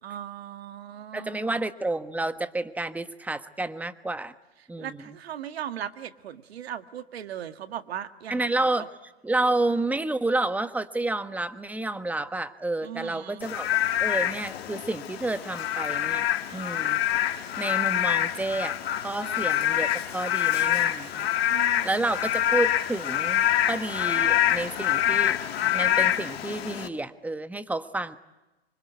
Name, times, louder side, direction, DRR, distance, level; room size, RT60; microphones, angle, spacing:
voice 1, 0.0-1.5 4.8-8.5 12.8-13.4 19.2-19.4 21.5-22.1, right 10 dB, 80° right, 10 dB, 1.8 m, -38 dB
voice 2, 1.1-4.3 4.7-5.2 8.3-8.9 9.2-13.7 14.0-16.3 16.5-17.0 17.6-21.3 21.8-28.2, right 2 dB, 5° right, 11 dB, 1.3 m, -30 dB
Frog / Rain, 13.4-26.9, left 11 dB, 75° left, 2.2 m, -26 dB
26.0 x 24.5 x 9.4 m, 1.1 s
hypercardioid pair, 120°, 31 cm